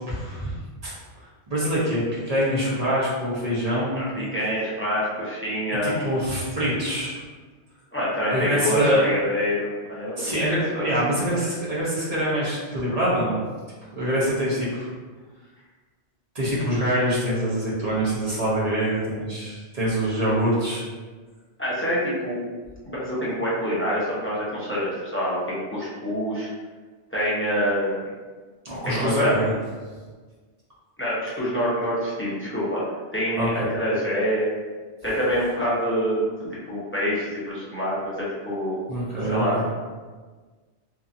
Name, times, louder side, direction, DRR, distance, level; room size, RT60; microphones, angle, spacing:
voice 1, 0.1-0.9 1.5-4.1 5.8-7.2 8.3-9.0 10.2-13.4 13.9-14.9 16.3-20.8 28.6-29.6 33.4-33.7 38.9-39.6, equal, 40° right, -8 dB, 0.8 m, -24 dB
voice 2, 3.9-5.9 7.9-10.3 10.7-10.9 21.6-22.4 22.8-26.5 27.1-28.0 28.8-29.3 31.0-32.8 33.1-34.5 35.0-36.2 36.7-38.8 39.2-39.7, equal, 15° left, -9 dB, 0.5 m, -26 dB
2.8 x 2.6 x 2.4 m, 1.4 s
omnidirectional pair, 1.1 m